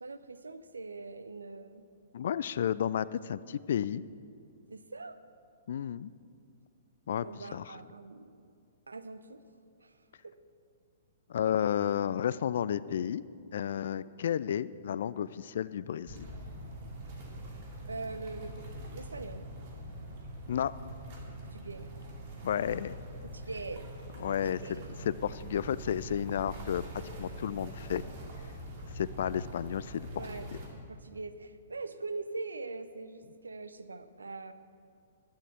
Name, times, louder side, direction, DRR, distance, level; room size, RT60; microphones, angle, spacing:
voice 1, 0.0-1.8 4.7-5.2 7.2-8.4 8.9-9.4 9.8-10.0 10.2-10.3 17.9-18.7 18.9-19.4 21.4-21.9 23.2-23.9 24.3-24.9 30.2-30.5 30.9-34.5, right 3 dB, 75° right, 11 dB, 0.6 m, -42 dB
voice 2, 2.1-4.0 5.7-6.1 7.1-7.8 11.3-13.2 13.5-16.3 20.5-20.7 22.4-22.9 24.2-24.8 25.1-28.0 28.9-30.1, left 9 dB, 55° left, 18 dB, 0.3 m, -32 dB
sound 1, 16.1-30.7, right 1 dB, 40° right, 2.5 m, -44 dB
11.5 x 11.0 x 5.9 m, 2.3 s
figure-of-eight pair, 115°, 0 cm